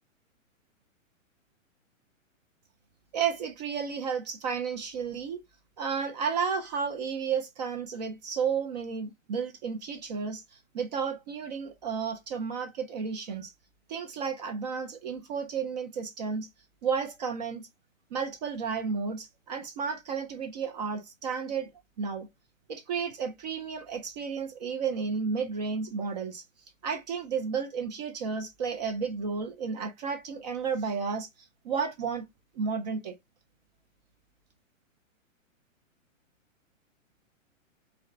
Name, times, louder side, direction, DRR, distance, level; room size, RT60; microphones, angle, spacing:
voice 1, 3.1-5.4 5.8-13.5 13.9-16.5 16.8-17.7 18.1-21.7 22.0-22.3 22.7-26.4 26.8-31.3 31.6-32.3 32.6-33.1, right 6 dB, 35° right, 0.4 m, -32 dB
3.6 x 2.2 x 2.4 m
hypercardioid pair, 140°, 40 cm